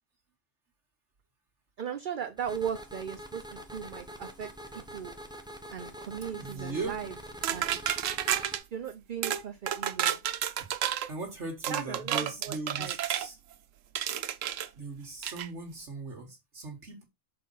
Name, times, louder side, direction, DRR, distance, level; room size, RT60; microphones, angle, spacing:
voice 1, 1.8-5.1 5.7-7.1 7.4-7.8 8.7-10.2 11.7-13.0, right 8 dB, 50° right, 0.7 m, -37 dB
sound 1, 2.4-8.6, equal, 5° right, 1.1 m, -45 dB
voice 2, 6.3-7.0 10.6-10.7 11.1-13.4 14.7-17.0, right 3 dB, 65° right, 2.0 m, -39 dB
sound 2, 7.4-8.6 9.2-9.4 9.7-11.1 11.6-13.3 14.0-14.7 15.2-15.5, right 10 dB, 85° right, 1.1 m, -31 dB
6.7 x 4.2 x 5.5 m
omnidirectional pair, 1.3 m